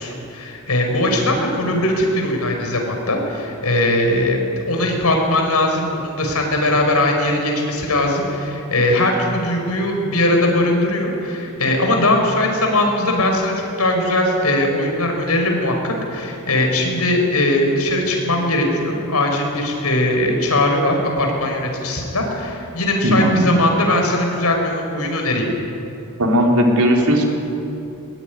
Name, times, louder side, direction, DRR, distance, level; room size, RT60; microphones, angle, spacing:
voice 1, 0.0-25.4, left 1 dB, 90° left, 2 dB, 5.6 m, -20 dB
voice 2, 23.0-23.5 26.2-27.3, equal, 85° right, 0 dB, 4.2 m, -16 dB
21.5 x 20.5 x 9.9 m, 2.8 s
head